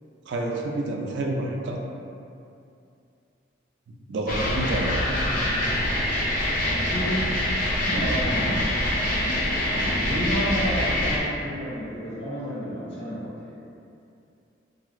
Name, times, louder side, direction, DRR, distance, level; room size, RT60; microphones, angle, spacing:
voice 1, 0.3-1.8 3.9-5.1 6.6-6.8, right 1 dB, 65° right, 0 dB, 0.3 m, -29 dB
sound 1, 4.3-11.2, left 1 dB, 45° left, 0.5 m, -25 dB
voice 2, 4.6-5.9 6.9-7.2 7.6-8.7 9.7-13.5, equal, 65° left, -9 dB, 1.0 m, -31 dB
3.0 x 2.7 x 2.4 m, 2.6 s
head